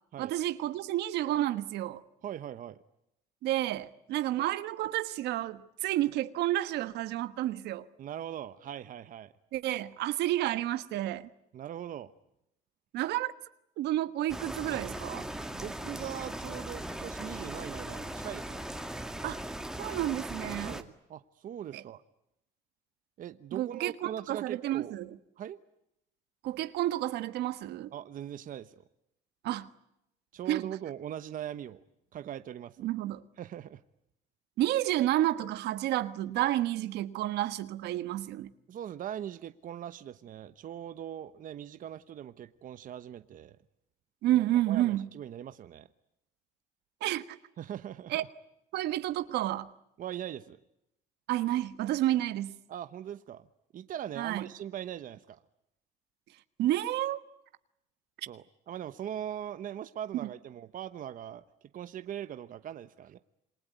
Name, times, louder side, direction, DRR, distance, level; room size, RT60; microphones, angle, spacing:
voice 1, 0.2-2.0 3.4-7.9 9.5-11.3 12.9-13.3 13.8-15.3 19.2-19.4 19.8-20.7 21.7-21.8 23.5-25.2 26.4-27.9 29.4-29.7 30.5-30.7 32.8-33.2 34.6-38.5 44.2-45.1 47.0-47.4 48.1-48.2 48.7-49.7 51.3-52.6 54.2-54.5 56.6-57.2, right 14 dB, 80° right, 1.4 m, -30 dB
voice 2, 2.2-2.8 8.0-9.3 11.5-12.1 15.5-18.7 20.6-22.0 23.2-25.0 25.4-25.6 27.9-28.8 30.3-31.8 32.1-32.9 33.4-33.8 38.7-43.6 44.3-45.9 47.6-48.1 50.0-50.6 52.7-53.5 53.7-55.4 58.3-61.4 61.7-63.2, right 10 dB, 55° right, 1.1 m, -41 dB
sound 1, 14.3-20.8, right 1 dB, 5° right, 2.0 m, -39 dB
28.0 x 22.0 x 9.3 m
cardioid pair, 110°, 17 cm